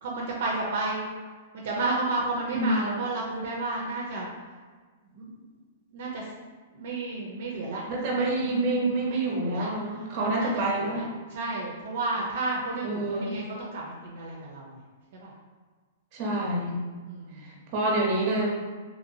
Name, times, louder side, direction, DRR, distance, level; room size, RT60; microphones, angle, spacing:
voice 1, 0.0-1.0 1.5-4.3 5.1-5.3 5.9-6.3 6.7-7.8 8.1-11.0 11.3-14.8 15.2-15.3 16.3-16.6 17.0-17.7, right 2 dB, 60° right, -3 dB, 0.6 m, -32 dB
voice 2, 2.5-3.0 7.9-11.0 12.8-13.4 16.1-16.8 17.4-18.5, right 2 dB, 35° right, -2 dB, 0.8 m, -27 dB
2.8 x 2.8 x 2.7 m, 1.5 s
hypercardioid pair, 150°, 0 cm